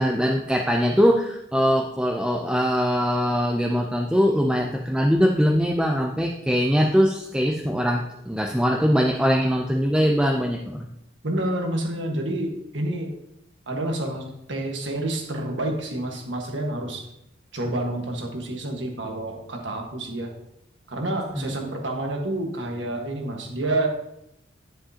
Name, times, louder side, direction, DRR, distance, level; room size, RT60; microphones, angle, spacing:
voice 1, 0.0-10.9 21.3-21.5, equal, 5° right, 1 dB, 0.4 m, -22 dB
voice 2, 11.2-13.1 13.7-17.0 17.5-20.3 20.9-23.9, right 1 dB, 85° right, 2 dB, 1.5 m, -28 dB
10.0 x 7.5 x 2.8 m, 0.81 s
head